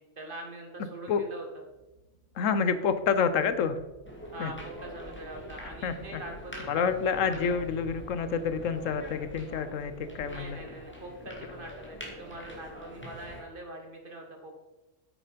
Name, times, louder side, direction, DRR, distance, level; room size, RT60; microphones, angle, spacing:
voice 1, 0.0-1.6 4.3-7.6 10.3-14.5, right 1 dB, 45° right, 2 dB, 1.7 m, -43 dB
sound 1, 1.4-11.4, right 2 dB, 75° right, 1.8 m, -53 dB
voice 2, 2.4-3.8 4.4-4.5 5.8-6.2 6.7-10.6, left 6 dB, 85° left, 11 dB, 1.1 m, -28 dB
sound 2, 4.1-13.4, left 1 dB, 10° left, 1.8 m, -45 dB
8.6 x 6.9 x 5.1 m, 1.0 s
omnidirectional pair, 1.3 m